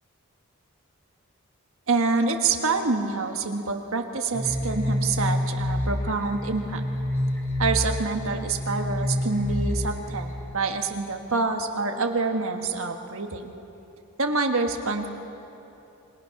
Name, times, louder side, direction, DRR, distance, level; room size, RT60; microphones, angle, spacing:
voice 1, 1.9-6.8 7.6-13.5 14.2-15.1, right 4 dB, 65° right, 4 dB, 1.5 m, -26 dB
sound 1, 4.3-10.4, left 1 dB, 10° left, 4.0 m, -28 dB
27.0 x 21.5 x 5.9 m, 3.0 s
head